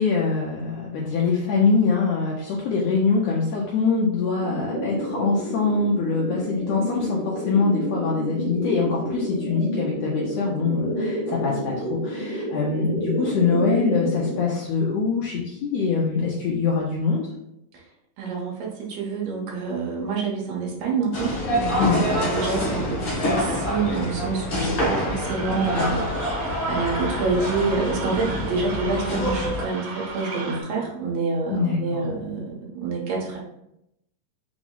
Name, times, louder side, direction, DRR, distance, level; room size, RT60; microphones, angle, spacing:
voice 1, 0.0-17.3 21.8-22.0 31.5-32.0, left 4 dB, 85° left, -3 dB, 1.5 m, -24 dB
sound 1, 4.4-14.4, equal, 45° left, 0.8 m, -29 dB
voice 2, 18.2-33.4, right 4 dB, 80° right, -3 dB, 2.7 m, -27 dB
sound 2, 21.1-29.6, left 1 dB, 70° left, 1.1 m, -26 dB
sound 3, 25.2-30.6, right 3 dB, 65° right, 1.6 m, -36 dB
6.0 x 2.0 x 3.7 m, 0.82 s
omnidirectional pair, 3.7 m